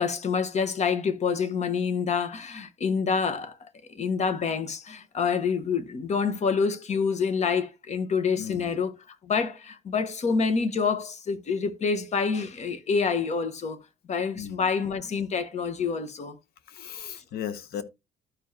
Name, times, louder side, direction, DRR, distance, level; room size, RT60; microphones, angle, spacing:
voice 1, 0.0-3.6 3.9-13.8 14.1-16.4, left 5 dB, 45° left, 1.3 m, -27 dB
voice 2, 8.4-8.8 14.3-14.7 16.7-17.8, left 9 dB, 65° left, 0.9 m, -36 dB
13.0 x 4.8 x 2.8 m
cardioid pair, 110°, 17 cm